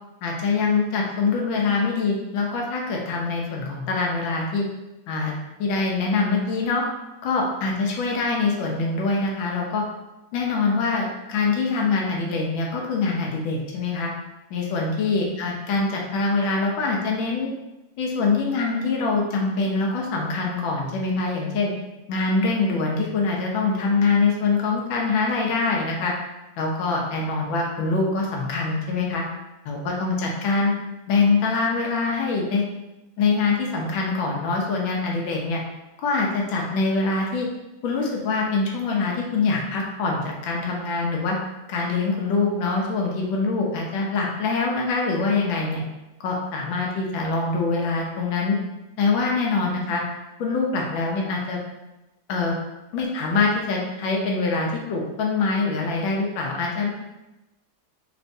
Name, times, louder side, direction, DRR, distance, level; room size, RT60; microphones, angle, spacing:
voice 1, 0.2-4.6 5.1-6.8 7.2-9.8 10.3-14.1 14.5-17.5 18.0-21.7 22.1-26.1 26.6-29.2 29.6-30.7 31.1-32.6 33.2-35.6 36.0-37.5 37.8-41.4 41.7-45.8 46.2-48.6 49.0-50.0 50.4-51.6 52.3-52.6 52.9-56.9, left 4 dB, 80° left, -1 dB, 1.5 m, -24 dB
4.3 x 3.0 x 2.6 m, 1.0 s
omnidirectional pair, 2.1 m